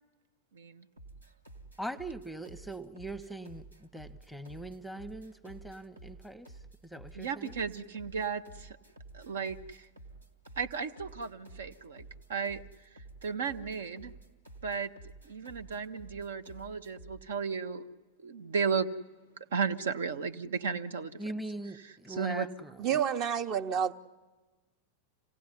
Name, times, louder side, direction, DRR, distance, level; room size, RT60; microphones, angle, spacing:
voice 1, 0.5-0.9 7.1-8.8 9.1-9.9 10.6-12.0 12.3-12.6 13.2-14.1 14.6-14.9 15.2-17.9 18.2-18.9 19.5-21.1 21.8-22.5, right 6 dB, 65° right, 9 dB, 0.9 m, -34 dB
sound 1, 1.0-17.3, right 2 dB, 80° right, 1.9 m, -51 dB
voice 2, 1.8-6.5 6.8-7.6 21.2-22.9, right 1 dB, ahead, 13 dB, 0.9 m, -41 dB
voice 3, 22.8-23.9, right 8 dB, 35° right, 11 dB, 1.0 m, -29 dB
26.5 x 17.5 x 9.8 m, 1.2 s
figure-of-eight pair, 90°, 0 cm